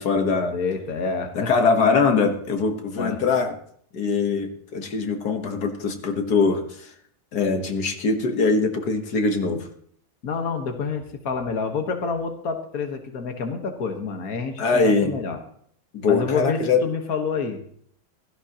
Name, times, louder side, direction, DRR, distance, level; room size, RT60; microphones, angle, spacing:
voice 1, 0.0-0.6 1.4-3.5 3.9-6.9 7.3-9.7 14.6-15.1 15.9-16.8, left 4 dB, 85° left, 5 dB, 2.0 m, -22 dB
voice 2, 0.5-1.7 3.0-3.2 10.2-15.4 16.1-17.6, left 4 dB, 65° left, 5 dB, 1.9 m, -28 dB
16.0 x 15.5 x 3.0 m, 0.62 s
omnidirectional pair, 1.6 m